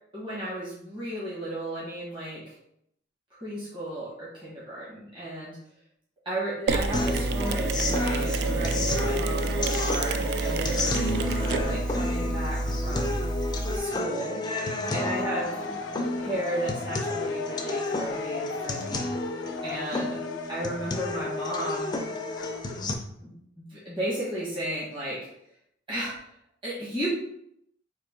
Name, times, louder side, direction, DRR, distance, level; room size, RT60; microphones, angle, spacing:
voice 1, 0.1-2.5 3.3-5.6 6.2-11.0 11.6-13.3 13.7-14.4 14.9-15.6 16.1-19.1 19.6-20.2 20.5-21.9 23.2-25.3 25.9-26.2 26.6-27.1, right 1 dB, 30° right, -9 dB, 1.4 m, -34 dB
Mechanisms, 6.7-13.8, right 3 dB, 60° right, 0.3 m, -28 dB
sound 1, 6.9-22.9, left 2 dB, 25° left, 0.4 m, -31 dB
sound 2, 15.2-22.9, left 4 dB, 90° left, 0.5 m, -38 dB
3.6 x 2.9 x 3.7 m, 0.73 s
head